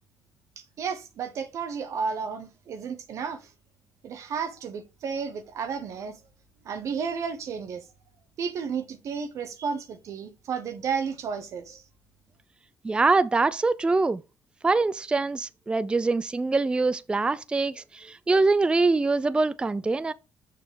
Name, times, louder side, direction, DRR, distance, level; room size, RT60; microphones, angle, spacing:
voice 1, 0.6-3.5 4.0-6.2 6.6-7.8 8.4-11.8, right 6 dB, 60° right, 0.9 m, -32 dB
voice 2, 12.8-14.2 14.6-20.1, right 3 dB, 15° right, 0.4 m, -24 dB
6.7 x 4.0 x 4.8 m
supercardioid pair, 70°, 6 cm